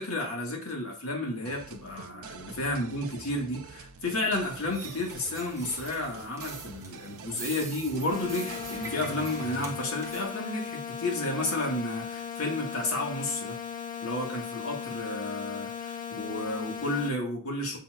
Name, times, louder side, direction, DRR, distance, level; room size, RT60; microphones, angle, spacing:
voice 1, 0.0-13.6 14.0-17.8, left 2 dB, 75° left, 0 dB, 2.0 m, -32 dB
sound 1, 1.4-9.8, right 5 dB, 75° right, 0.6 m, -46 dB
sound 2, 4.5-10.3, right 4 dB, 15° right, 0.8 m, -44 dB
sound 3, 8.1-17.1, left 7 dB, 35° left, 0.8 m, -38 dB
7.1 x 5.6 x 2.6 m, 0.38 s
head